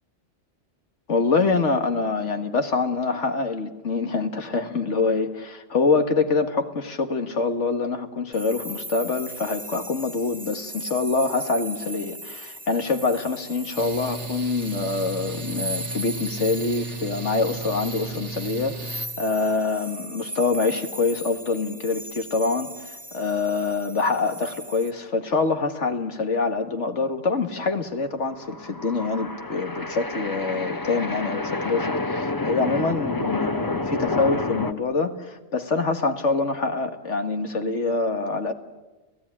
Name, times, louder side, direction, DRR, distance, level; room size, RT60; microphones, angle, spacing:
voice 1, 1.1-38.5, left 4 dB, 85° left, 6 dB, 2.2 m, -25 dB
sound 1, 8.3-24.9, right 1 dB, 10° right, 1.0 m, -38 dB
Mechanical fan, 13.8-19.1, right 3 dB, 85° right, 1.8 m, -35 dB
sound 2, 28.3-34.7, left 2 dB, 20° left, 0.9 m, -29 dB
29.5 x 16.5 x 10.0 m, 1.2 s
omnidirectional pair, 1.2 m